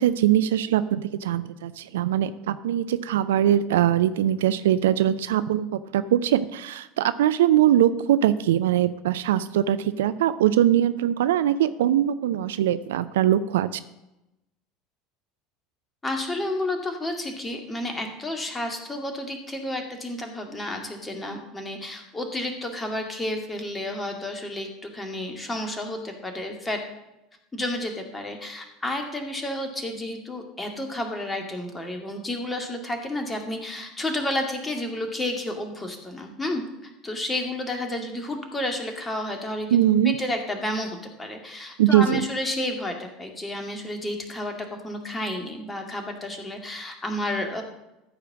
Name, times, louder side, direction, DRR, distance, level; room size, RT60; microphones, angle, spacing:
voice 1, 0.0-13.7 39.7-40.2 41.8-42.2, right 11 dB, 70° right, 13 dB, 0.4 m, -22 dB
voice 2, 16.0-26.8 27.5-39.8 40.0-47.6, left 1 dB, 15° left, 3 dB, 2.1 m, -31 dB
13.5 x 5.0 x 7.3 m, 0.94 s
figure-of-eight pair, 70°, 0 cm